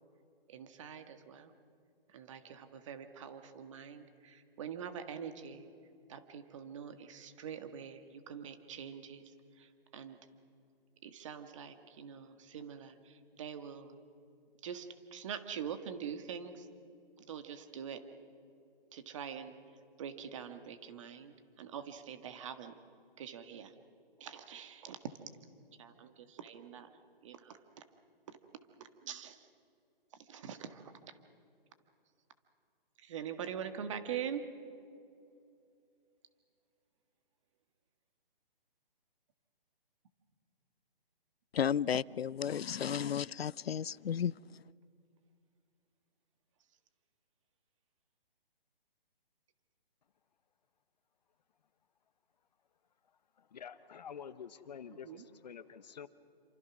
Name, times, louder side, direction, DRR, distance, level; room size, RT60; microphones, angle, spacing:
voice 1, 0.5-1.5 2.1-5.7 6.1-9.2 9.6-10.2 11.0-14.0 14.6-16.7 17.3-18.0 18.9-19.5 20.0-22.7 23.2-23.7 24.2-25.0 25.8-26.9 27.2-27.8 28.3-28.4 28.8-29.4 30.3-30.9 33.0-34.4 54.9-55.2, right 8 dB, 30° right, 1.7 m, -44 dB
voice 2, 41.5-44.3, left 8 dB, 85° left, 0.5 m, -33 dB
voice 3, 53.4-56.1, left 7 dB, 45° left, 1.0 m, -48 dB
28.5 x 26.0 x 6.1 m
hypercardioid pair, 160°, 29 cm